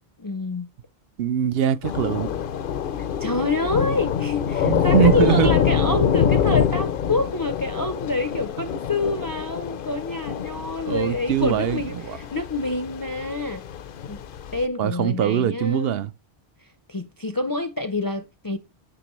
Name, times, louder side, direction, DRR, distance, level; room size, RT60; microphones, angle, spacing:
voice 1, 0.2-0.7 3.2-13.6 14.1-14.2 14.5-16.0 16.9-18.6, left 2 dB, 30° left, 0.4 m, -27 dB
voice 2, 1.2-2.3 4.6-5.5 10.8-12.2 14.8-16.1, right 10 dB, 75° right, 0.8 m, -22 dB
Thunder / Rain, 1.8-14.6, left 8 dB, 60° left, 0.7 m, -25 dB
9.8 x 5.9 x 3.0 m
omnidirectional pair, 1.0 m